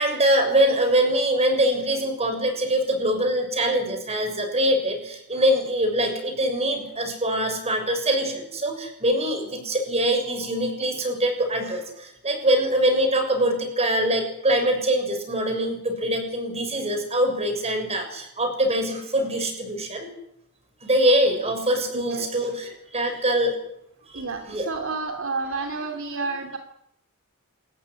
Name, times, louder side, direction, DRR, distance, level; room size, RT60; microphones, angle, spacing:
voice 1, 0.0-20.1 20.8-23.6 24.1-24.7, right 1 dB, 30° right, 5 dB, 6.8 m, -23 dB
voice 2, 21.9-22.4 24.1-26.6, right 3 dB, 65° right, 4 dB, 2.8 m, -30 dB
28.0 x 14.5 x 9.8 m, 0.77 s
head